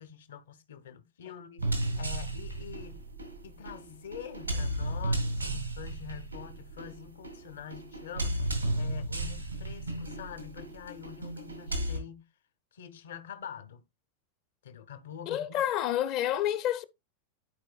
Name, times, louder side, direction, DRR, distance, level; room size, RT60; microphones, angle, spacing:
voice 1, 0.0-1.7 2.0-3.0 3.4-12.2 12.7-13.8 14.6-15.6, left 8 dB, 60° left, 1.0 m, -45 dB
sound 1, 1.6-12.0, right 1 dB, 85° right, 1.9 m, -34 dB
voice 2, 15.3-16.8, left 11 dB, 40° left, 0.7 m, -29 dB
11.5 x 4.5 x 2.4 m
figure-of-eight pair, 90°, 0 cm